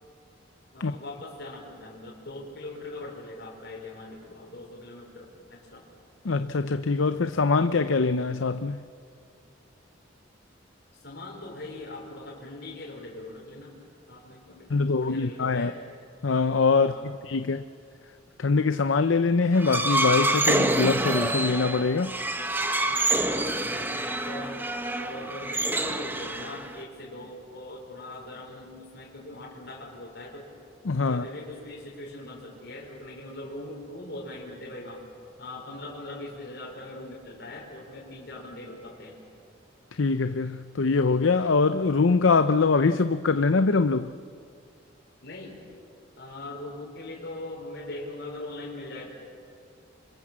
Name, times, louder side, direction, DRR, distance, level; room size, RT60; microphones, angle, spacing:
voice 1, 0.7-5.9 11.0-13.7 14.1-15.7 16.8-17.2 22.8-24.6 25.0-30.5 31.1-35.0 35.4-39.2 45.2-45.6 46.2-49.1, left 2 dB, 60° left, 4.9 m, -41 dB
voice 2, 6.2-8.8 14.7-15.7 16.2-17.6 18.4-22.1 30.8-31.3 39.9-44.1, left 4 dB, 90° left, 0.7 m, -23 dB
sound 1, 19.5-26.8, right 2 dB, 10° right, 1.2 m, -27 dB
28.5 x 25.5 x 7.5 m
head